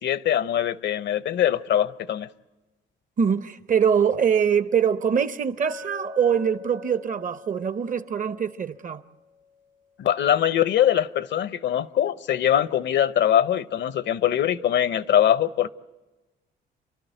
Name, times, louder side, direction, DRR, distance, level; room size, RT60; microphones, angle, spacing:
voice 1, 0.0-2.3 10.0-15.7, left 10 dB, 65° left, 0.7 m, -22 dB
voice 2, 3.2-9.0, right 7 dB, 40° right, 0.8 m, -23 dB
Chink clink, 5.6-9.8, left 4 dB, 80° right, 1.6 m, -44 dB
28.5 x 12.0 x 9.0 m
cardioid pair, 90°, 20 cm